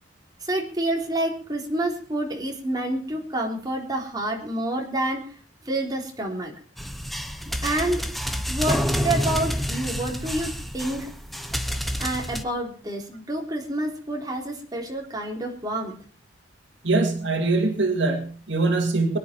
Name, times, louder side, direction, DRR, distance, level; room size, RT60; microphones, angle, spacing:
voice 1, 0.4-5.3 5.6-6.5 7.6-8.1 8.5-11.1 12.0-16.0, right 1 dB, 20° right, 0 dB, 3.7 m, -28 dB
sound 1, 6.8-12.4, equal, ahead, 1.1 m, -28 dB
voice 2, 16.8-19.2, right 3 dB, 70° right, 5 dB, 2.2 m, -23 dB
22.0 x 10.5 x 4.5 m, 0.41 s
head